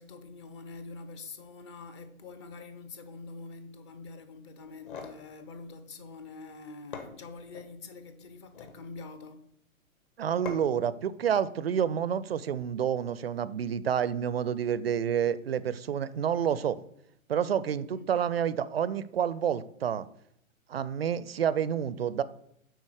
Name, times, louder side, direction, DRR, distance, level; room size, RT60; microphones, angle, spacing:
voice 1, 0.0-9.5 17.9-18.1, left 3 dB, 20° left, 0.6 m, -45 dB
sound 1, 4.6-5.2 6.5-6.6 6.9-7.7 8.4-8.8 10.5-10.9, left 5 dB, 40° left, 1.3 m, -42 dB
voice 2, 10.2-16.8 17.3-20.1 20.7-22.2, right 8 dB, 50° right, 0.5 m, -29 dB
9.2 x 4.0 x 6.3 m
figure-of-eight pair, 120°, 41 cm